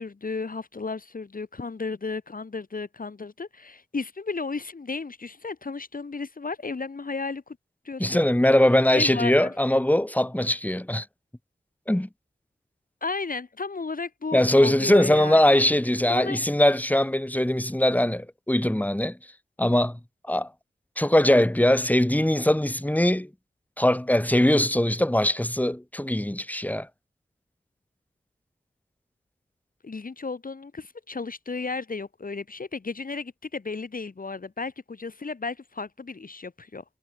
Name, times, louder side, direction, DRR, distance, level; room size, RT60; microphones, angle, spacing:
voice 1, 0.0-7.6 7.8-8.2 8.9-9.5 13.0-15.6 16.1-16.4 29.8-36.8, left 4 dB, 55° left, 1.6 m, -34 dB
voice 2, 8.0-11.1 11.9-12.1 14.3-19.2 19.6-20.0 20.3-20.5 21.0-23.3 23.8-26.9, left 1 dB, 10° left, 2.3 m, -21 dB
wide cardioid pair, 55°, 17 cm